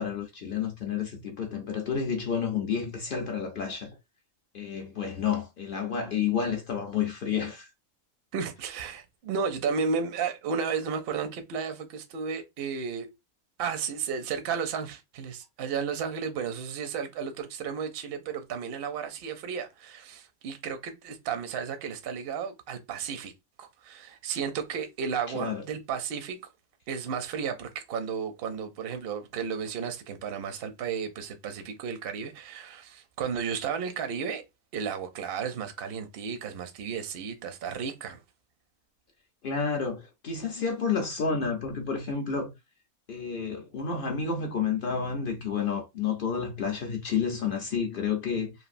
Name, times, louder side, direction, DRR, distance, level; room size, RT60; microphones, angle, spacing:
voice 1, 0.0-4.0 4.5-7.7 25.3-25.6 39.4-42.5 43.1-48.5, left 6 dB, 60° left, 0.5 m, -30 dB
voice 2, 8.3-13.1 13.6-23.3 23.6-26.4 26.9-34.4 34.7-38.2, right 6 dB, 65° right, 0.6 m, -33 dB
3.2 x 2.5 x 2.5 m
omnidirectional pair, 1.5 m